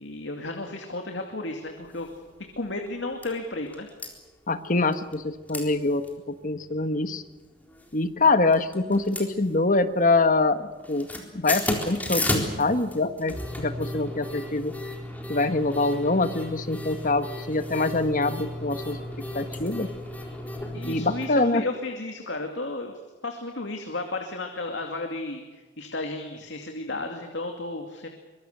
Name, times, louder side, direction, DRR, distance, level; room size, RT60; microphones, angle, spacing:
voice 1, 0.0-2.1 2.6-3.9 20.7-28.1, left 2 dB, 75° left, 4 dB, 2.5 m, -33 dB
sound 1, 1.9-2.1 2.6-2.7 2.9-3.3 3.7-4.1 4.9-5.2 5.5-5.7 6.0-6.1 6.6-6.9 7.6-8.2 8.5-9.9 10.2-10.5 10.7-21.3, left 1 dB, 10° left, 3.9 m, -34 dB
voice 2, 4.5-7.2 7.9-11.1 11.3-14.7 15.3-19.0 19.3-19.9 20.8-21.6, left 2 dB, 45° left, 10 dB, 1.5 m, -24 dB
24.5 x 22.5 x 6.8 m, 1.3 s
head